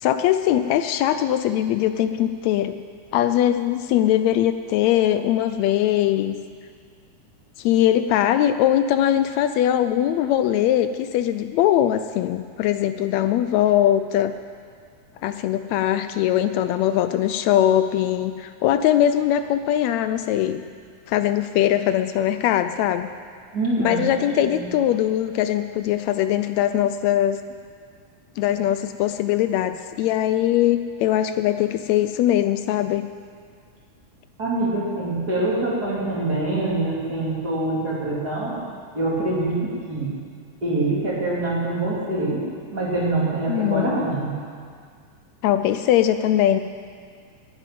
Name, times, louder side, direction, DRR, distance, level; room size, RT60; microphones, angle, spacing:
voice 1, 0.0-2.8 3.1-6.3 7.6-14.3 15.2-20.6 21.1-23.1 23.8-27.4 28.4-33.1 43.5-44.0 45.4-46.6, left 11 dB, 80° left, 10 dB, 1.6 m, -21 dB
voice 2, 23.5-24.7 34.4-38.6 38.9-40.1 40.6-42.4 42.7-44.3, right 2 dB, 30° right, -7 dB, 3.6 m, -25 dB
11.0 x 10.5 x 9.2 m, 2.1 s
omnidirectional pair, 3.5 m